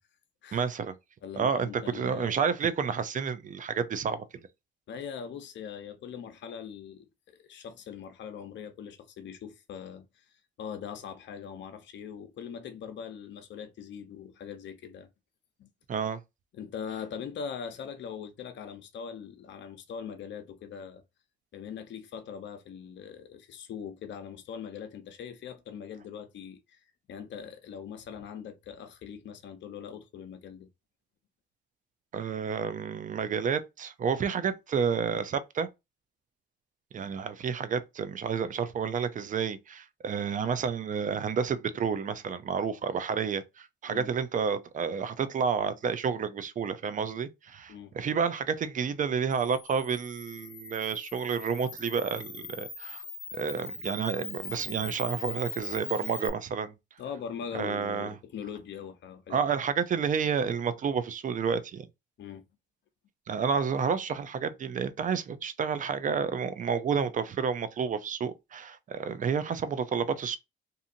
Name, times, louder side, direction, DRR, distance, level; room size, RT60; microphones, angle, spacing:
voice 1, 0.5-0.9 1.3-4.3 15.9-16.2 32.1-35.7 36.9-53.0 53.3-56.7 57.5-58.1 59.3-61.9 63.3-70.4, right 6 dB, 40° right, 0.5 m, -30 dB
voice 2, 1.2-2.3 4.9-10.3 10.6-15.1 15.6-15.7 16.5-21.0 21.5-26.8 27.1-30.7 43.9-44.1 47.7-47.9 57.0-59.4 62.2-62.4, left 7 dB, 65° left, 0.7 m, -41 dB
Camera, 49.3-56.3, left 4 dB, 30° left, 0.8 m, -41 dB
2.6 x 2.6 x 2.5 m
cardioid pair, 90°, 20 cm